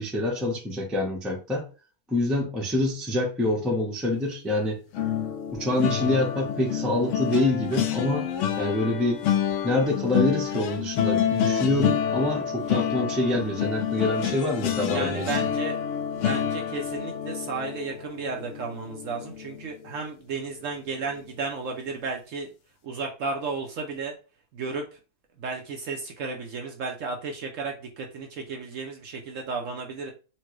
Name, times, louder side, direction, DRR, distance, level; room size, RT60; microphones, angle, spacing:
voice 1, 0.0-1.7 2.1-4.8 5.5-8.3 8.6-9.2 9.6-15.3, left 1 dB, ahead, 0.4 m, -26 dB
sound 1, 4.9-20.1 20.5-20.7 21.0-21.2, left 9 dB, 70° left, 0.7 m, -28 dB
voice 2, 14.9-15.8 16.1-22.5 22.8-24.1 24.5-25.0 25.4-30.1, right 4 dB, 65° right, 0.8 m, -33 dB
4.3 x 2.1 x 3.0 m
omnidirectional pair, 1.7 m